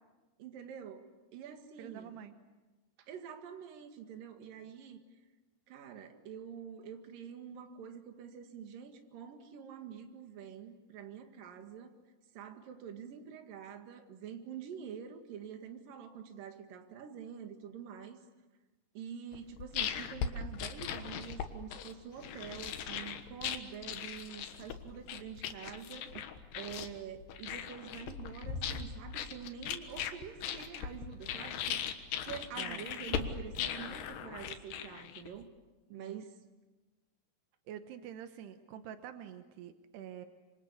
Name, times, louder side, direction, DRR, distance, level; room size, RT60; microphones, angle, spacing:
voice 1, 0.4-2.2 3.1-5.0 5.7-11.9 12.4-18.2 19.0-26.3 26.5-35.5 35.9-36.4, right 8 dB, 60° right, 6 dB, 3.5 m, -46 dB
voice 2, 1.8-2.4 32.6-32.9 35.9-36.2 37.7-40.3, right 10 dB, 85° right, 8 dB, 3.2 m, -47 dB
sound 1, 19.3-35.4, left 8 dB, 80° left, 3.4 m, -39 dB
27.0 x 26.5 x 8.3 m, 1.2 s
omnidirectional pair, 4.7 m